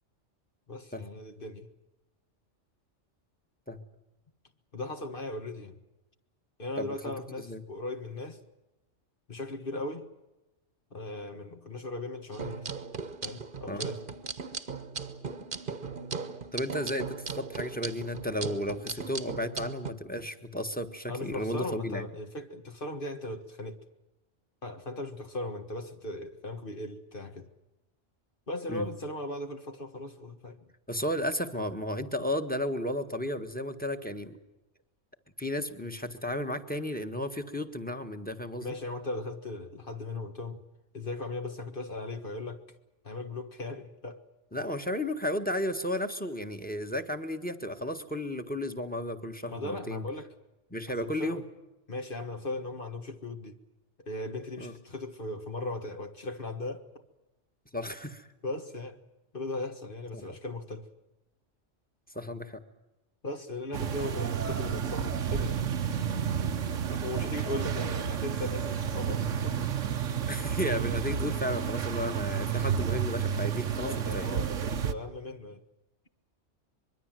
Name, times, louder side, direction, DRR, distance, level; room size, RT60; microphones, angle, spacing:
voice 1, 0.7-1.7 4.7-5.8 6.6-8.4 9.3-10.1 10.9-12.7 13.2-14.0 20.2-20.3 21.1-23.8 24.6-27.5 28.5-30.6 38.6-40.6 40.9-42.6 43.0-44.2 49.5-50.3 50.9-51.4 51.9-53.6 54.0-56.8 58.4-59.0 59.3-60.9 63.2-65.6 67.0-69.7 73.8-75.6, left 2 dB, 45° left, 1.8 m, -38 dB
sound 1, 12.3-19.9, right 5 dB, 45° right, 1.3 m, -38 dB
voice 2, 16.5-22.0 28.7-28.9 30.9-34.4 35.4-38.7 44.5-50.1 50.7-51.4 54.6-54.7 57.7-58.3 60.1-60.2 62.1-62.6 66.9-67.0 70.3-74.4, left 1 dB, 5° left, 1.7 m, -33 dB
sound 2, 63.7-74.9, right 8 dB, 85° right, 1.4 m, -31 dB
24.5 x 22.5 x 7.7 m
omnidirectional pair, 1.3 m